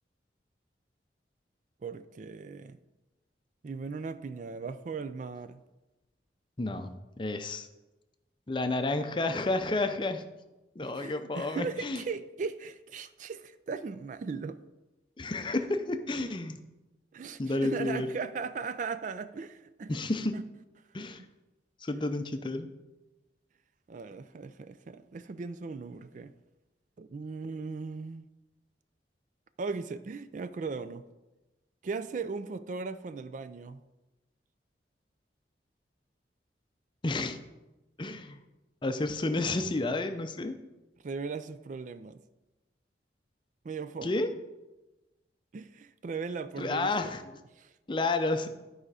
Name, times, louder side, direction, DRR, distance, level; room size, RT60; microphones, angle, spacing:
voice 1, 1.8-2.8 3.6-5.6 10.8-14.6 17.1-19.9 20.3-20.4 21.0-21.3 21.9-22.0 23.9-26.3 27.0-28.3 29.6-31.0 31.8-33.8 41.0-42.2 43.6-44.2 45.5-47.1 47.6-47.7, right 4 dB, 45° right, 13 dB, 0.4 m, -38 dB
voice 2, 6.6-6.9 7.2-7.7 8.5-10.2 10.8-12.0 15.2-16.6 17.4-18.1 19.9-20.3 20.9-21.2 21.8-22.7 37.0-37.4 38.0-38.4 38.8-40.6 44.0-44.3 46.6-47.2 47.9-48.5, left 2 dB, 25° left, 8 dB, 0.5 m, -30 dB
11.5 x 4.9 x 4.8 m, 1.1 s
head